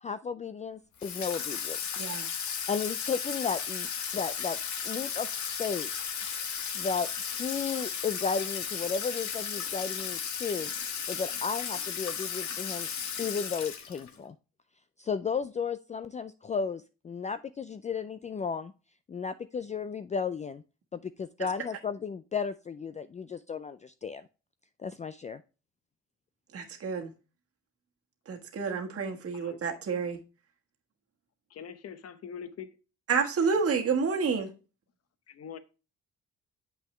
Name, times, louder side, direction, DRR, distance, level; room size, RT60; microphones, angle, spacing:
voice 1, 0.0-1.8 2.7-3.9 4.1-4.6 4.8-5.3 5.6-5.9 6.7-10.7 11.1-12.9 13.2-14.4 15.0-18.7 19.1-20.6 20.9-24.3 24.8-25.4, left 6 dB, 25° left, 0.4 m, -34 dB
Water tap faucet / Sink (filling or washing), 1.0-14.1, left 7 dB, 70° left, 1.4 m, -35 dB
voice 2, 26.5-27.1 28.3-30.2 33.1-34.5, right 5 dB, 50° right, 1.5 m, -29 dB
voice 3, 31.5-32.7 35.3-35.6, left 7 dB, 55° left, 1.0 m, -43 dB
7.7 x 5.9 x 3.2 m
cardioid pair, 90°, 30 cm